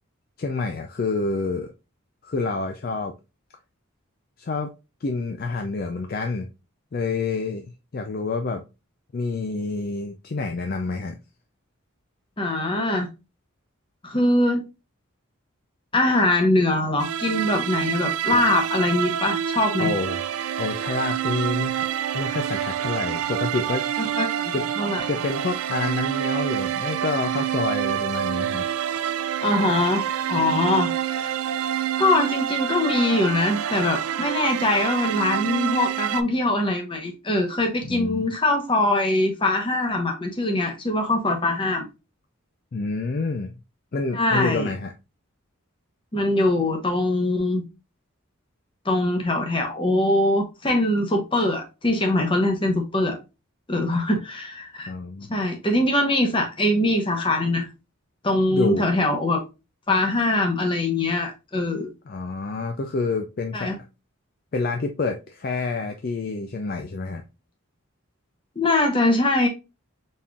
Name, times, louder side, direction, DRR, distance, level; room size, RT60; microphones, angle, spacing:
voice 1, 0.4-1.7 2.2-3.1 4.4-4.7 5.0-6.5 6.9-8.6 9.1-11.2 18.3-18.4 19.8-20.2 20.6-21.9 22.1-23.9 24.5-24.7 25.0-28.7 37.9-38.3 42.7-43.5 43.9-44.9 54.9-55.3 58.5-58.9 62.1-63.7 64.5-67.2, left 3 dB, 45° left, 0.4 m, -28 dB
voice 2, 12.4-13.1 14.0-14.6 15.9-19.9 24.0-25.0 29.4-31.3 32.0-41.9 44.1-44.7 46.1-47.6 48.8-53.2 53.7-54.9 55.3-57.7 58.2-59.4 59.9-61.9 63.5-63.7 68.6-69.5, left 2 dB, 25° left, 0.8 m, -22 dB
sound 1, 17.0-36.2, right 10 dB, 85° right, 0.4 m, -27 dB
4.2 x 3.6 x 2.3 m
head